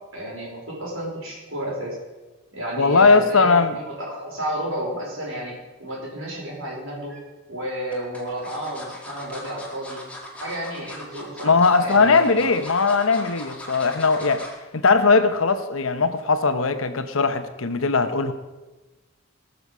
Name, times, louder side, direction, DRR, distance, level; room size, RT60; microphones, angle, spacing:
voice 1, 0.1-2.0 2.5-7.2 7.5-10.0 10.4-12.3, right 1 dB, 70° right, -3 dB, 5.0 m, -32 dB
voice 2, 2.8-3.8 11.4-14.4 14.7-18.3, left 4 dB, 75° left, 10 dB, 1.0 m, -19 dB
sound 1, 6.9-7.2 7.9-14.6 15.0-15.2 15.5-15.6, left 1 dB, 5° left, 2.0 m, -39 dB
19.5 x 6.7 x 5.5 m, 1.1 s
head